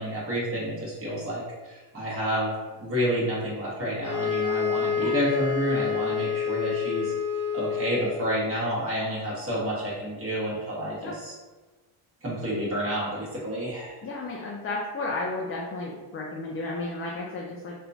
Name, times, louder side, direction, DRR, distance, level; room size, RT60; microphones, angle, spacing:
voice 1, 0.0-2.5 2.8-7.1 7.5-11.3 12.2-13.9, equal, 25° right, -7 dB, 1.4 m, -29 dB
sound 1, 4.0-8.4, left 7 dB, 60° left, 0.9 m, -28 dB
voice 2, 14.0-17.7, left 2 dB, 30° left, -3 dB, 0.4 m, -33 dB
2.9 x 2.2 x 2.7 m, 1.3 s
cardioid pair, 90°, 49 cm